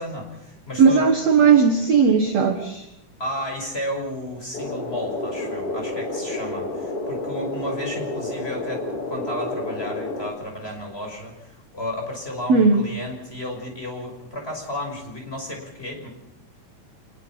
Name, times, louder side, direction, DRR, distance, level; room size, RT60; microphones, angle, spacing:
voice 1, 0.0-1.0 3.2-16.1, left 1 dB, 15° left, 2 dB, 6.0 m, -33 dB
voice 2, 0.8-2.9 12.5-12.8, right 5 dB, 55° right, 6 dB, 2.2 m, -17 dB
sound 1, 4.5-10.3, left 2 dB, 40° left, 3.5 m, -30 dB
26.5 x 21.5 x 5.9 m, 0.89 s
omnidirectional pair, 4.3 m